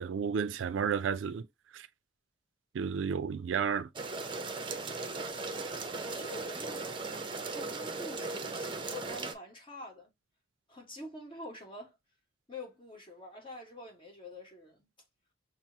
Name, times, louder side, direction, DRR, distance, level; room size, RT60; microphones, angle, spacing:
voice 1, 0.0-1.5 1.7-1.9 2.7-3.9, right 6 dB, 85° right, 0.4 m, -32 dB
sound 1, 4.0-9.3, right 3 dB, 25° right, 0.6 m, -37 dB
voice 2, 5.6-10.1 10.7-12.0 12.5-14.9, left 1 dB, 30° left, 1.3 m, -47 dB
5.9 x 2.0 x 2.7 m
head